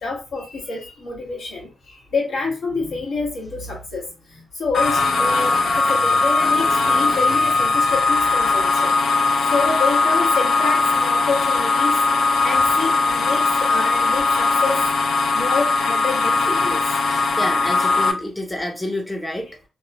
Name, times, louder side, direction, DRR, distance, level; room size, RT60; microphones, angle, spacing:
voice 1, 0.0-1.7 2.1-4.0 4.3-8.9 9.5-12.0 12.4-14.7 15.0-16.8, left 4 dB, 85° left, -1 dB, 1.3 m, -27 dB
sound 1, 4.7-18.1, left 3 dB, 65° left, 0.3 m, -19 dB
voice 2, 17.4-19.7, left 1 dB, 10° left, 1 dB, 0.5 m, -28 dB
2.9 x 2.0 x 2.9 m, 0.31 s
cardioid pair, 80°, 0 cm